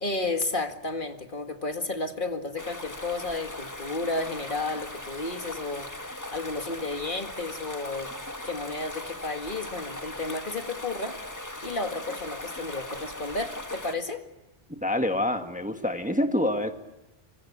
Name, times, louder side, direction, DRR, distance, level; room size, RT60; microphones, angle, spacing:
voice 1, 0.0-5.9 6.3-8.1 8.4-11.2 11.6-14.3, left 3 dB, 50° left, 2.2 m, -32 dB
sound 1, 2.6-13.9, left 1 dB, 15° left, 1.6 m, -39 dB
voice 2, 14.8-16.7, left 1 dB, 5° right, 1.4 m, -26 dB
26.5 x 25.0 x 8.6 m
omnidirectional pair, 1.1 m